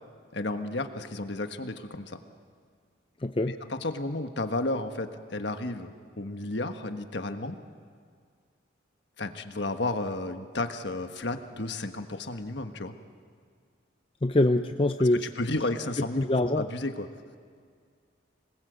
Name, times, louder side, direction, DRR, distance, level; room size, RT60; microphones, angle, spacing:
voice 1, 0.3-2.2 3.5-7.6 9.2-12.9 15.3-16.2 16.5-17.1, left 2 dB, 60° left, 7 dB, 1.4 m, -32 dB
voice 2, 3.2-3.5 14.2-15.3 16.2-16.7, left 1 dB, 25° left, 7 dB, 0.5 m, -24 dB
26.5 x 20.5 x 8.1 m, 2.1 s
head